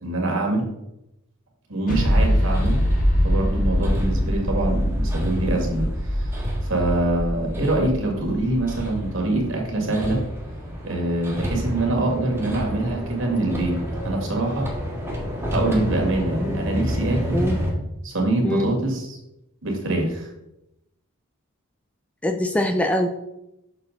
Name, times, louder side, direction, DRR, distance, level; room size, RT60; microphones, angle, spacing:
voice 1, 0.0-0.6 1.7-2.8 3.2-10.2 10.8-13.8 14.0-14.7 15.5-17.5 18.0-19.2 19.6-20.3, right 2 dB, 60° right, 0 dB, 2.2 m, -24 dB
sound 1, 1.9-9.4, equal, 40° left, 1.7 m, -23 dB
Hammer, 2.0-17.7, equal, 10° right, 1.7 m, -31 dB
voice 2, 17.3-17.6 18.4-18.7 22.2-23.1, left 1 dB, 5° left, 5 dB, 0.4 m, -23 dB
6.8 x 6.5 x 4.0 m, 0.87 s
head